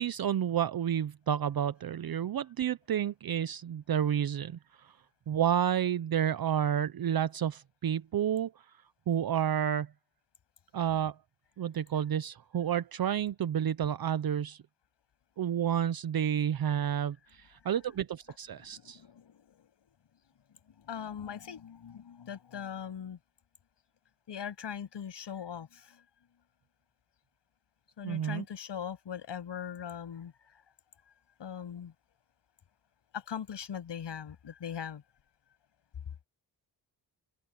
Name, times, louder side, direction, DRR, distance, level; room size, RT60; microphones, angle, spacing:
voice 1, 0.0-4.9 5.3-8.5 9.1-9.9 10.7-11.2 11.6-14.6 15.4-19.0 28.0-28.4, right 9 dB, 55° right, 0.7 m, -30 dB
voice 2, 18.6-19.7 20.8-23.2 24.3-26.0 28.0-30.3 31.4-31.9 33.1-35.0, left 8 dB, 75° left, 7.5 m, -40 dB
open air
wide cardioid pair, 105°, 43 cm